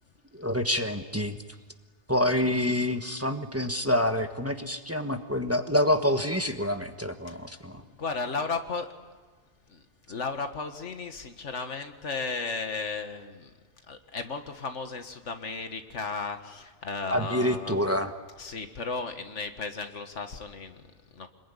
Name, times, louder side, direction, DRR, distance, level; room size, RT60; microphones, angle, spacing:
voice 1, 0.3-1.4 2.1-7.8 17.1-18.1, left 1 dB, 15° right, 6 dB, 1.3 m, -27 dB
voice 2, 7.7-8.9 9.7-13.5 13.9-17.8 18.4-21.3, left 4 dB, 90° left, 7 dB, 2.0 m, -35 dB
26.5 x 21.0 x 9.9 m, 1.4 s
omnidirectional pair, 1.2 m